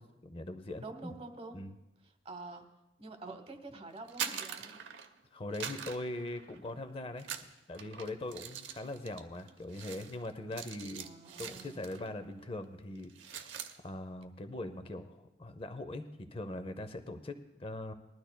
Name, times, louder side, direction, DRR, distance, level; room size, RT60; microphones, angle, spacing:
voice 1, 0.0-1.1 1.5-1.7 5.3-7.3 7.7-11.1 11.4-17.9, left 1 dB, 30° left, 10 dB, 0.6 m, -41 dB
voice 2, 0.8-1.6 2.0-2.6 3.0-4.9 11.0-12.1, right 3 dB, 30° right, 6 dB, 1.0 m, -47 dB
sound 1, 4.0-5.2 5.5-6.8 7.2-12.1 12.4-12.6 13.0-13.8, right 8 dB, 90° right, 0.8 m, -43 dB
20.5 x 12.0 x 2.2 m, 0.99 s
head